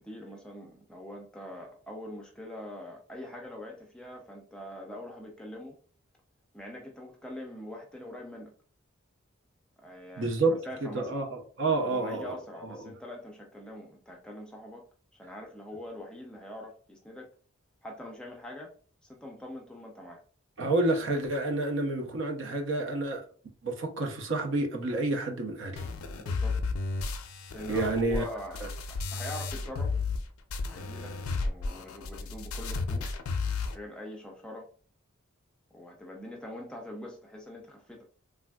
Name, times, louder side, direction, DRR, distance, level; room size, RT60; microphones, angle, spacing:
voice 1, 0.0-5.8 6.5-8.5 9.8-11.2 11.8-14.9 15.1-17.3 17.8-18.7 19.0-20.2 26.2-26.6 27.5-30.0 30.7-33.1 33.7-34.7 35.7-38.0, left 1 dB, 5° left, 0 dB, 0.4 m, -43 dB
voice 2, 10.2-10.5 10.8-12.4 20.6-23.3 23.6-25.8 27.7-28.2, right 2 dB, 65° right, 3 dB, 0.6 m, -29 dB
sound 1, 25.8-30.2 30.5-33.8, left 4 dB, 85° left, 0.4 m, -33 dB
3.3 x 2.4 x 2.2 m, 0.43 s
head